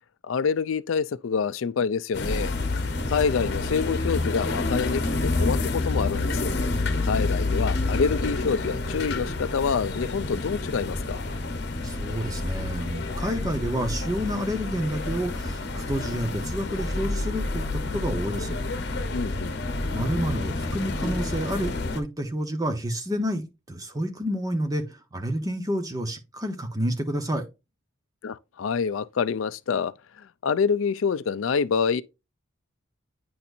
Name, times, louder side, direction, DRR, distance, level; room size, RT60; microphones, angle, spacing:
voice 1, 0.2-2.5 3.1-6.5 7.0-11.2 19.1-19.5 28.2-32.0, left 6 dB, 80° left, 0.4 m, -27 dB
sound 1, 2.1-22.0, left 2 dB, 55° left, 1.0 m, -28 dB
voice 2, 11.8-17.6 17.9-18.6 19.9-24.8 25.1-27.4, equal, 20° right, 1.0 m, -29 dB
9.3 x 4.3 x 2.6 m
head